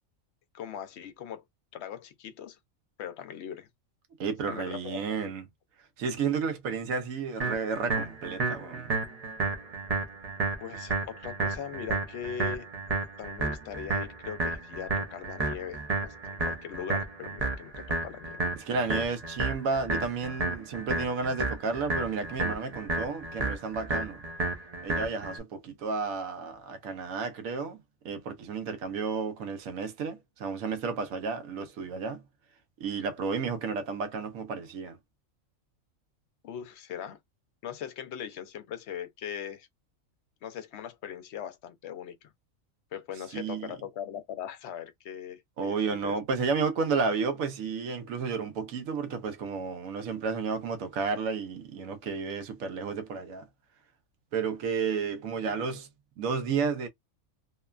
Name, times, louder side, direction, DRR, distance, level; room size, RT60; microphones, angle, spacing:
voice 1, 0.5-1.4 1.7-2.6 3.0-3.7 4.5-5.2 10.6-12.7 13.2-18.5 36.4-37.2 37.6-39.7 40.4-42.3 42.9-46.2, left 9 dB, 65° left, 0.8 m, -40 dB
voice 2, 4.2-5.4 6.0-8.9 18.5-24.2 24.8-27.8 28.0-32.2 32.8-35.0 43.3-43.7 45.6-53.5 54.3-55.9 56.2-56.9, right 5 dB, 80° right, 1.1 m, -32 dB
sound 1, 7.4-25.4, right 3 dB, 45° right, 0.5 m, -32 dB
2.9 x 2.2 x 2.3 m
omnidirectional pair, 1.4 m